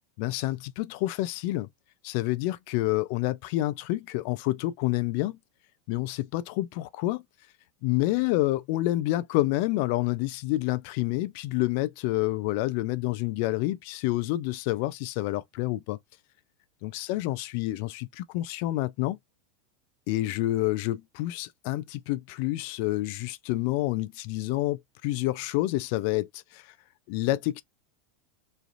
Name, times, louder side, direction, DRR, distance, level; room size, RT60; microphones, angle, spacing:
voice 1, 0.2-1.7 2.0-5.4 5.9-7.2 7.8-16.0 16.8-19.2 20.1-26.7 27.1-27.6, left 17 dB, 60° left, 0.4 m, -28 dB
3.1 x 2.5 x 2.4 m
supercardioid pair, 135°, 0 cm